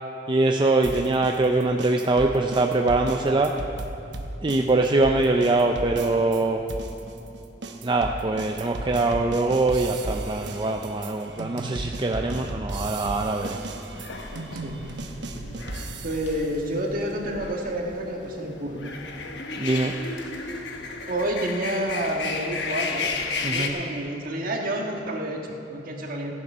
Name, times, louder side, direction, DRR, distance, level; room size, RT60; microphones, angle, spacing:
voice 1, 0.3-3.5 4.4-6.6 7.8-13.6 19.6-19.9 23.4-23.7, right 2 dB, 25° right, 3 dB, 0.5 m, -23 dB
sound 1, 0.8-6.4 6.7-16.4, right 2 dB, 70° right, 0.9 m, -35 dB
sound 2, 13.9-23.7, left 4 dB, 70° left, 1.1 m, -34 dB
voice 2, 14.5-14.8 16.0-18.8 21.1-23.1 23.4-26.3, right 1 dB, 50° right, 1 dB, 1.5 m, -29 dB
15.0 x 10.5 x 5.5 m, 2.8 s
head